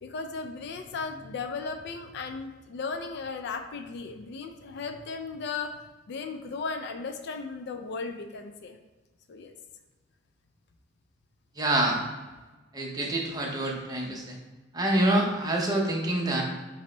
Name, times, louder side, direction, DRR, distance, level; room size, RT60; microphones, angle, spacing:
voice 1, 0.0-5.8 6.1-8.8 9.3-9.5, left 4 dB, 60° left, 6 dB, 0.4 m, -36 dB
voice 2, 11.6-12.0 12.7-14.4 14.7-16.4, right 1 dB, 20° right, -1 dB, 0.7 m, -26 dB
5.3 x 2.1 x 3.8 m, 1.2 s
head